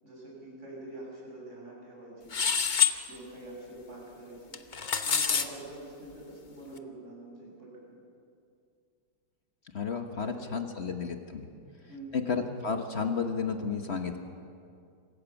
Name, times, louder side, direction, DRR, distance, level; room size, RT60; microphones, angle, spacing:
voice 1, 0.0-2.4 3.1-4.6 5.0-8.0 10.0-10.8 11.6-12.3, right 1 dB, 35° right, -4 dB, 7.5 m, -46 dB
sound 1, 2.3-2.9 4.5-5.5, left 7 dB, 65° left, 0.4 m, -26 dB
voice 2, 9.7-11.5 12.1-14.2, left 5 dB, 40° left, 5 dB, 1.2 m, -32 dB
26.0 x 15.5 x 7.1 m, 2.4 s
omnidirectional pair, 2.3 m